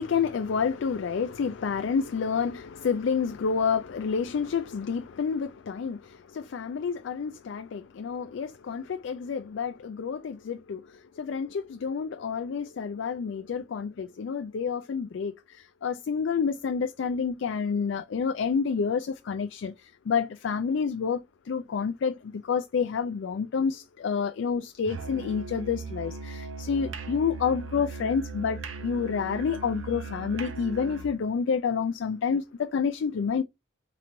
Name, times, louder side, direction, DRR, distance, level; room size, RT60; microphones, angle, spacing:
voice 1, 0.0-33.4, left 6 dB, 65° left, 0.3 m, -29 dB
Musical instrument, 24.8-31.2, right 3 dB, 75° right, 0.7 m, -38 dB
3.8 x 3.0 x 4.2 m
head